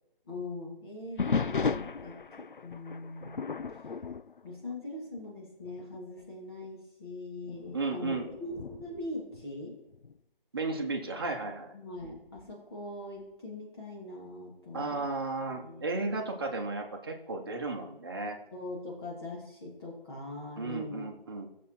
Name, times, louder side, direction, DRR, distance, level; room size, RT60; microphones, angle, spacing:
voice 1, 0.3-3.8 4.4-8.5 8.8-9.8 11.7-15.1 15.5-15.9 18.5-21.1, left 2 dB, 25° left, -3 dB, 2.5 m, -42 dB
sound 1, 1.2-5.3 5.7-6.0 6.6-6.7 7.5-10.2 12.0-12.5, left 5 dB, 60° left, 0.5 m, -36 dB
voice 2, 7.7-8.3 10.5-11.7 14.7-18.4 20.6-21.5, right 3 dB, 25° right, 2 dB, 1.4 m, -34 dB
15.0 x 7.4 x 4.5 m, 0.90 s
figure-of-eight pair, 160°, 29 cm